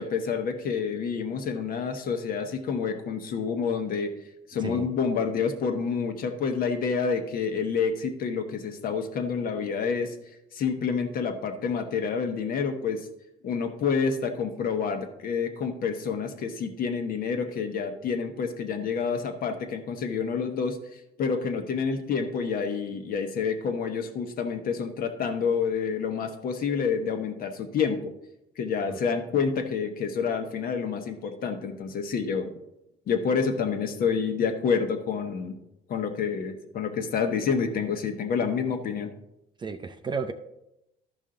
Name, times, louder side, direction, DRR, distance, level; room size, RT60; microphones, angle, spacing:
voice 1, 0.0-4.1 4.5-10.2 10.5-13.0 13.4-20.8 21.2-28.1 28.6-32.5 33.1-35.6 35.9-39.1, left 6 dB, 60° left, 6 dB, 1.1 m, -28 dB
voice 2, 39.6-40.3, right 5 dB, 25° right, 9 dB, 0.5 m, -32 dB
12.5 x 5.4 x 3.8 m, 0.89 s
cardioid pair, 110°, 17 cm